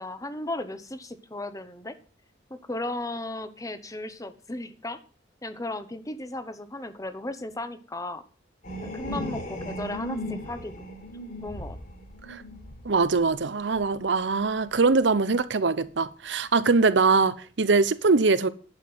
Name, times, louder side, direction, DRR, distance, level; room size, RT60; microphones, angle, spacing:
voice 1, 0.0-2.0 2.5-5.0 5.4-8.2 8.8-10.7 11.4-11.8, left 2 dB, 20° left, 1.0 m, -35 dB
sound 1, 8.6-13.8 14.5-14.8, equal, 50° left, 4.8 m, -37 dB
voice 2, 12.8-18.5, right 4 dB, 70° right, 0.8 m, -22 dB
11.0 x 5.9 x 7.8 m
head